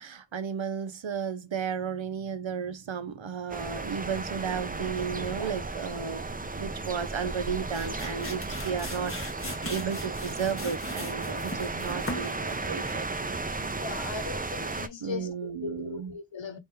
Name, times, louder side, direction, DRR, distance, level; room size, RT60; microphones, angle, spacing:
voice 1, 0.0-13.1 15.0-16.1, right 7 dB, 85° right, 0.7 m, -34 dB
sound 1, 3.5-14.9, right 3 dB, 20° right, 0.5 m, -35 dB
sound 2, 7.5-13.1, left 1 dB, 30° left, 1.3 m, -40 dB
voice 2, 13.8-16.6, left 5 dB, 75° left, 0.9 m, -38 dB
3.4 x 2.6 x 4.5 m
wide cardioid pair, 50°, 45 cm